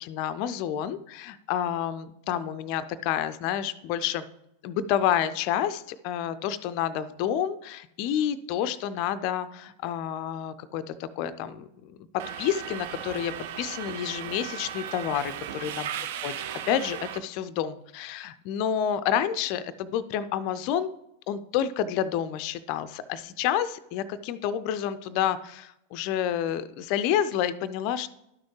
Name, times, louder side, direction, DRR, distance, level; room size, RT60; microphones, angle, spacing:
voice 1, 0.0-4.2 4.6-15.3 15.6-15.9 16.2-16.4 16.7-20.9 21.3-28.1, left 10 dB, 45° left, 14 dB, 0.4 m, -29 dB
Subway metro underground, 12.2-17.2, right 9 dB, 55° right, 0.5 m, -36 dB
12.0 x 6.2 x 3.1 m, 0.84 s
figure-of-eight pair, 90°, 0 cm